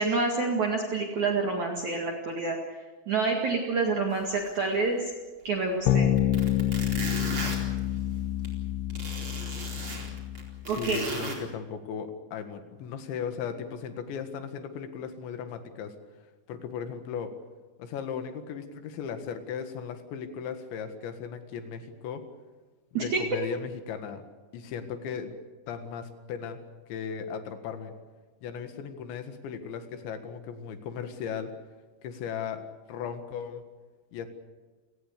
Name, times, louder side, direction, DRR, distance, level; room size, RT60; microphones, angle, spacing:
voice 1, 0.0-2.6 3.1-5.1 5.4-6.1 10.7-11.1 22.9-23.2, right 3 dB, 50° right, 1 dB, 2.9 m, -27 dB
sound 1, 4.1-4.2 4.6-4.7 5.7-5.8 6.2-8.5 8.9-11.3, right 3 dB, 30° right, 4.8 m, -36 dB
sound 2, 5.9-10.6, left 11 dB, 70° left, 3.3 m, -28 dB
voice 2, 10.7-16.0 16.5-17.3 17.8-22.2 22.9-24.2 24.5-25.3 25.7-26.6 26.9-27.9 28.4-31.5 32.0-32.6 32.9-33.6 34.1-34.3, left 7 dB, 90° left, 8 dB, 4.1 m, -37 dB
29.5 x 19.5 x 6.8 m, 1.3 s
omnidirectional pair, 5.1 m